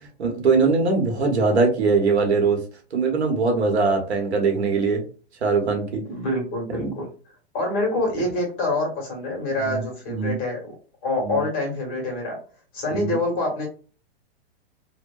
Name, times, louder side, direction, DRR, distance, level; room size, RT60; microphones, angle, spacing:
voice 1, 0.0-2.6 2.9-5.0 5.4-6.0 6.7-6.9 9.6-10.4 11.2-11.4 12.9-13.2, right 4 dB, 90° right, 3 dB, 1.0 m, -22 dB
voice 2, 6.1-7.1 7.5-10.7 11.0-12.4 12.7-13.7, left 2 dB, 30° left, 0 dB, 1.3 m, -26 dB
2.8 x 2.1 x 2.3 m, 0.38 s
hypercardioid pair, 140°, 32 cm